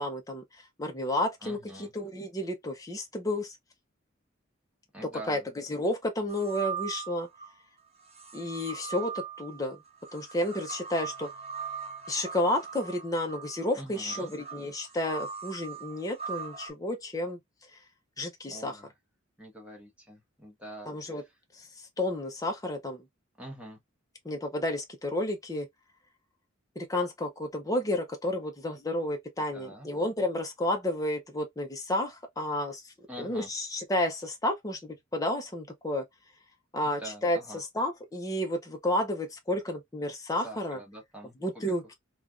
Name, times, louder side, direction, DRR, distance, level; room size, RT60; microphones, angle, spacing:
voice 1, 0.0-3.6 5.3-7.3 8.3-9.8 10.1-11.3 12.1-17.4 18.2-18.8 20.9-21.2 21.5-23.0 24.2-25.7 26.8-32.8 33.2-36.0 36.7-40.8 41.4-41.9, left 1 dB, 15° left, 0.6 m, -31 dB
voice 2, 1.4-1.9 4.9-5.4 13.7-14.3 18.4-18.9 19.4-21.2 23.4-23.8 29.5-29.9 33.1-33.5 36.8-37.6 40.4-41.7, right 1 dB, 5° right, 1.2 m, -45 dB
sound 1, 6.3-7.5 8.1-16.7, right 6 dB, 30° right, 1.0 m, -40 dB
3.2 x 2.4 x 2.4 m
head